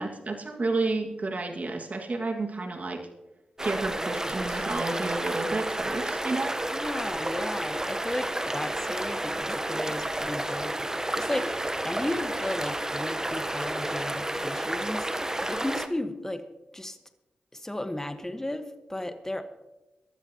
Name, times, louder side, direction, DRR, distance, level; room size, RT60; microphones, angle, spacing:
voice 1, 0.0-3.0 3.6-6.6, right 3 dB, 50° right, 3 dB, 2.0 m, -31 dB
sound 1, 3.6-15.9, right 1 dB, 20° right, 1.0 m, -31 dB
Keyboard (musical), 4.5-7.4, left 5 dB, 65° left, 1.7 m, -53 dB
voice 2, 6.6-11.5 11.8-16.5 16.7-17.0 17.5-19.5, left 1 dB, 15° left, 9 dB, 1.3 m, -34 dB
22.0 x 12.5 x 2.9 m, 1.0 s
cardioid pair, 45°, 3 cm